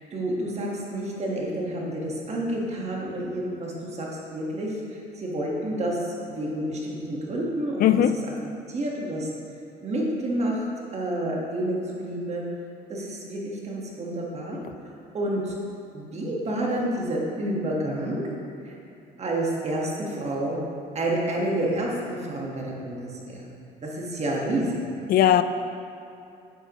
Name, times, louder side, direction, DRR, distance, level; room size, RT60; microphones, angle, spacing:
voice 1, 0.0-8.0 8.7-9.3 9.8-10.7 10.9-12.4 12.9-14.6 15.1-15.5 15.9-18.2 18.6-18.7 19.2-20.6 20.9-23.5 23.8-24.8, right 1 dB, 35° right, -2 dB, 1.6 m, -29 dB
voice 2, 7.8-8.2 25.1-25.4, left 11 dB, 55° left, 12 dB, 0.4 m, -18 dB
8.1 x 7.9 x 3.0 m, 2.7 s
cardioid pair, 105°, 19 cm